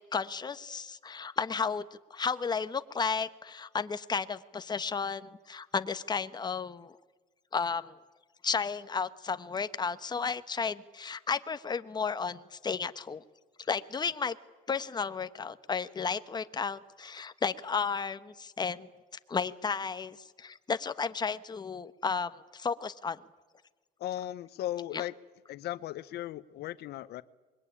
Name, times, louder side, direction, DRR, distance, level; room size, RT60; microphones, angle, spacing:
voice 1, 0.0-6.9 7.5-7.9 8.4-13.2 13.7-14.4 14.7-18.9 19.3-23.2 24.9-25.0, left 5 dB, 25° left, 1.1 m, -33 dB
voice 2, 24.0-25.1 25.5-27.2, left 13 dB, 75° left, 0.8 m, -37 dB
25.5 x 22.0 x 10.0 m
cardioid pair, 110°, 17 cm